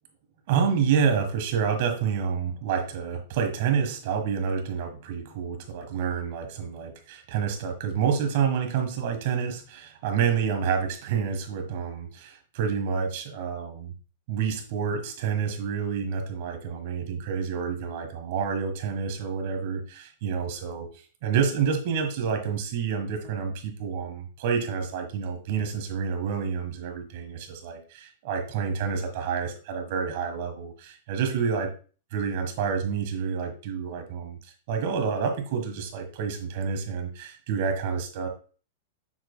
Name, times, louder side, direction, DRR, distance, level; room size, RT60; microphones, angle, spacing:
voice 1, 0.5-13.9 14.3-20.9 21.2-31.7 32.1-34.4 34.7-38.3, right 6 dB, 50° right, 5 dB, 1.5 m, -28 dB
7.5 x 6.0 x 2.2 m, 0.37 s
supercardioid pair, 170°, 0 cm